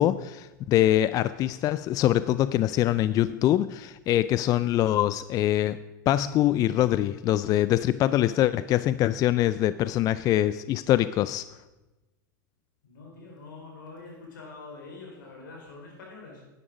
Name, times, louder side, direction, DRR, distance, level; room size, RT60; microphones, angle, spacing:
voice 1, 0.0-5.8 6.1-11.5, left 13 dB, 35° left, 15 dB, 0.3 m, -24 dB
voice 2, 12.8-16.4, left 3 dB, 80° left, 0 dB, 4.3 m, -45 dB
11.0 x 10.0 x 5.1 m, 1.1 s
hypercardioid pair, 105°, 10 cm